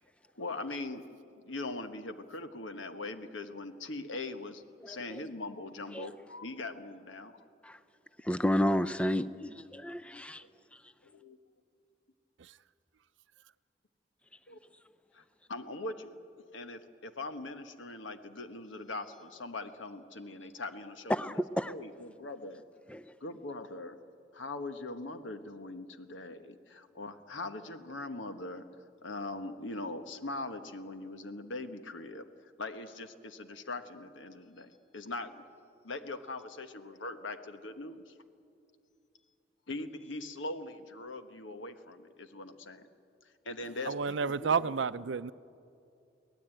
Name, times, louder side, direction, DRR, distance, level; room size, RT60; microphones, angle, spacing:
voice 1, 0.3-1.0 1.4-7.3 11.0-11.4 14.5-14.6 15.1-22.6 23.2-24.0 24.3-28.6 29.0-35.4 35.8-38.1 39.7-42.9 43.4-44.7, left 2 dB, 90° left, 1.3 m, -41 dB
voice 2, 8.2-10.4 21.1-21.7 22.9-23.0, equal, 5° left, 0.4 m, -31 dB
voice 3, 43.8-45.3, right 5 dB, 80° right, 0.5 m, -31 dB
23.5 x 17.5 x 9.1 m
head